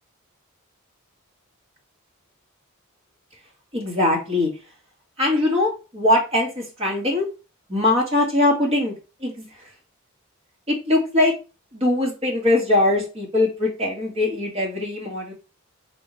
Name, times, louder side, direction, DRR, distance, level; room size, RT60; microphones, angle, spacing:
voice 1, 3.7-4.5 5.2-7.3 7.7-9.7 10.7-11.3 11.7-15.3, left 2 dB, 30° right, -2 dB, 1.6 m, -21 dB
4.2 x 3.9 x 3.1 m, 0.32 s
head